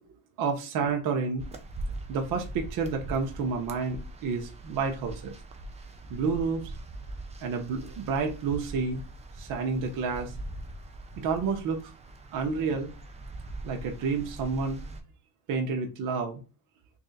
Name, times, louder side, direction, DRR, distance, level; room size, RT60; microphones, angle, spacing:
voice 1, 0.4-1.4 2.1-5.3 6.1-6.7 7.4-9.0 9.4-10.3 11.2-11.8 12.3-12.9 13.6-14.8 15.5-16.4, right 5 dB, 50° right, 2 dB, 0.8 m, -30 dB
sound 1, 1.4-15.0, right 2 dB, 15° right, 0.4 m, -42 dB
3.2 x 2.6 x 3.9 m, 0.31 s
cardioid pair, 120°, 44 cm